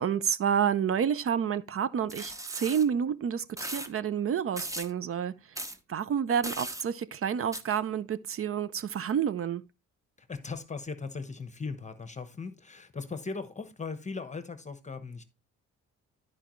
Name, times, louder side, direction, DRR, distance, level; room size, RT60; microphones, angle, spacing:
voice 1, 0.0-5.3 5.9-9.6, right 8 dB, 50° right, 0.6 m, -29 dB
sound 1, 2.1-2.9 3.6-3.9 4.6-4.9 5.6-5.8 6.4-6.8 7.5-7.6, right 1 dB, 10° right, 0.9 m, -37 dB
voice 2, 10.2-15.2, left 4 dB, 25° left, 1.0 m, -38 dB
13.0 x 4.8 x 3.1 m
cardioid pair, 90°, 30 cm